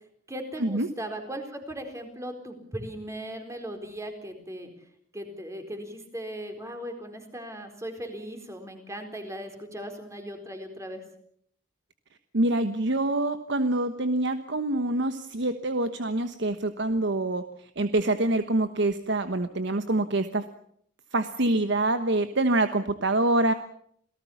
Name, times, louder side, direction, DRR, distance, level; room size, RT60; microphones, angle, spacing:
voice 1, 0.3-4.7 5.1-11.0, equal, 15° right, 5 dB, 4.2 m, -38 dB
voice 2, 12.3-20.5 21.1-23.5, right 2 dB, 65° right, 10 dB, 1.2 m, -26 dB
28.0 x 18.0 x 7.2 m, 0.67 s
head